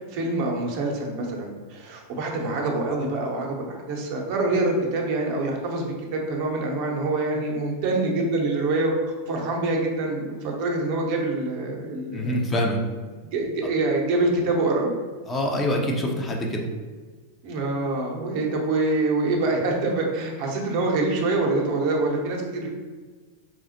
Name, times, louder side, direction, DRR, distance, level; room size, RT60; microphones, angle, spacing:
voice 1, 0.1-5.8 6.1-8.9 9.3-12.3 13.3-14.9 17.4-22.7, right 2 dB, 50° right, 0 dB, 0.7 m, -25 dB
voice 2, 12.1-12.8 15.3-16.7, left 1 dB, 20° left, 0 dB, 0.5 m, -25 dB
4.3 x 2.0 x 2.9 m, 1.4 s
figure-of-eight pair, 90°, 0 cm